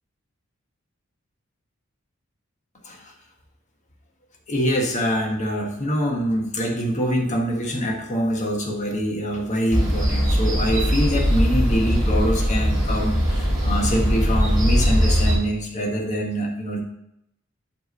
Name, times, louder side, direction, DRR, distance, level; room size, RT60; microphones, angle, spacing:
voice 1, 4.5-16.8, equal, 35° left, 0 dB, 1.4 m, -24 dB
sound 1, 9.7-15.4, equal, 20° right, 3.2 m, -20 dB
8.2 x 3.6 x 5.3 m, 0.78 s
head